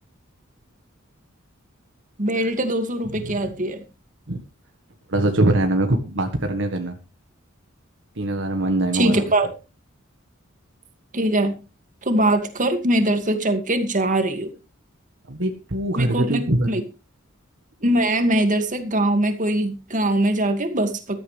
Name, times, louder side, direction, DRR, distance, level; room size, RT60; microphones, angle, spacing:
voice 1, 2.2-3.8 8.9-9.5 11.1-11.5 12.1-14.5 16.0-16.8 17.8-21.2, right 1 dB, 40° right, 7 dB, 2.4 m, -22 dB
voice 2, 3.2-3.6 4.3-4.4 5.1-7.0 8.2-9.2 15.3-16.7, right 1 dB, 65° right, 5 dB, 1.6 m, -22 dB
15.0 x 13.5 x 3.4 m, 0.31 s
head